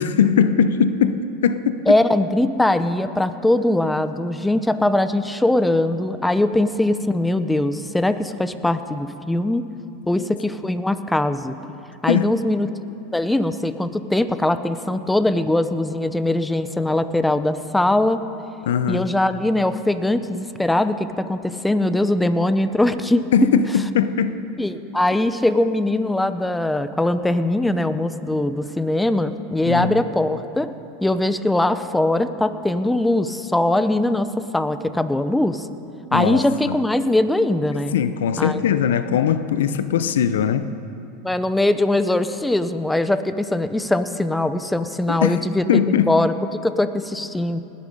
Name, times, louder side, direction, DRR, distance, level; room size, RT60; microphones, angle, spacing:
voice 1, 0.0-1.9 12.1-12.4 18.6-19.1 23.3-24.4 29.6-30.0 36.1-36.8 37.9-40.7 45.1-46.2, left 8 dB, 85° left, 12 dB, 0.6 m, -20 dB
voice 2, 1.9-9.6 10.1-11.6 12.0-12.7 13.1-18.2 18.9-23.3 24.6-30.7 31.0-35.7 36.1-37.9 38.4-38.6 41.2-45.8 46.1-47.6, left 1 dB, 5° left, 11 dB, 0.6 m, -21 dB
20.0 x 8.5 x 5.3 m, 2.7 s
hypercardioid pair, 110°, 0 cm